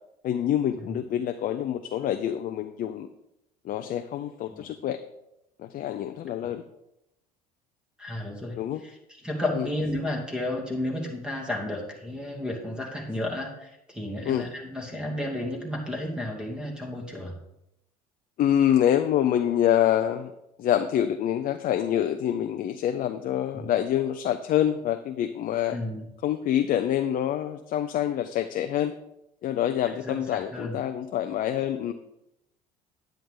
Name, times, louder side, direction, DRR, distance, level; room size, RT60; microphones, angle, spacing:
voice 1, 0.2-3.1 3.6-5.0 5.6-6.6 8.6-8.8 9.5-9.7 14.3-14.5 18.4-20.3 20.6-25.8 26.2-28.9 29.4-31.9, left 10 dB, 45° left, 9 dB, 0.6 m, -26 dB
voice 2, 8.0-9.0 9.2-17.3 23.5-23.7 25.7-26.1 30.0-30.8, left 1 dB, 5° right, 0 dB, 2.5 m, -32 dB
9.9 x 9.1 x 3.7 m, 0.85 s
hypercardioid pair, 65°, 20 cm